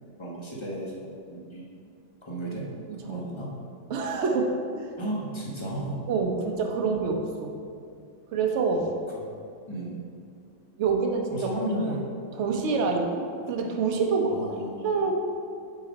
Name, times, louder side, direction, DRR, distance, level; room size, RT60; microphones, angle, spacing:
voice 1, 0.2-1.6 2.2-2.7 3.0-3.6 5.0-6.0 9.7-10.0 11.3-12.1 14.3-14.9, right 1 dB, 20° left, -4 dB, 1.0 m, -34 dB
voice 2, 2.9-3.3 3.9-4.9 6.1-7.5 8.3-8.9 10.8-11.3 12.4-14.4 14.8-15.2, right 4 dB, 55° right, 2 dB, 0.8 m, -26 dB
7.0 x 5.0 x 5.3 m, 2.4 s
omnidirectional pair, 2.1 m